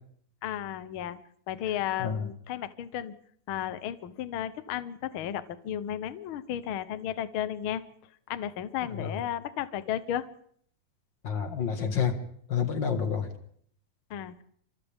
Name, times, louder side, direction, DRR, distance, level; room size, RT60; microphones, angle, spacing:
voice 1, 0.4-1.2 1.5-3.1 3.5-7.8 8.3-10.3 14.1-14.4, left 10 dB, 70° left, 13 dB, 1.3 m, -34 dB
voice 2, 11.2-12.2 12.5-13.3, left 7 dB, 40° left, 6 dB, 2.2 m, -28 dB
29.5 x 26.5 x 3.6 m, 0.64 s
omnidirectional pair, 3.7 m